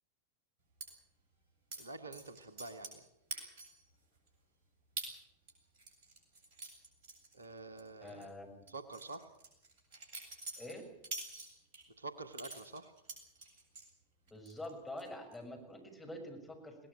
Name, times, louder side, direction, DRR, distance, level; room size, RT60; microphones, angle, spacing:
sound 1, 0.8-0.9 1.7-1.8 2.1-3.0 3.3-3.8 4.3-4.4 5.0-5.1 5.5-7.8 8.1-8.3 8.7-11.8 12.3-13.9 14.3-14.7 15.0-15.4, right 3 dB, 50° right, 7.9 m, -46 dB
voice 1, 1.8-3.1 7.3-8.3 8.7-9.3 12.0-12.9, right 3 dB, 75° right, 12 dB, 1.4 m, -47 dB
voice 2, 8.0-8.6 10.6-10.8 14.3-16.8, left 1 dB, 10° left, 1 dB, 6.5 m, -46 dB
21.0 x 18.0 x 8.9 m, 0.84 s
figure-of-eight pair, 90°, 0 cm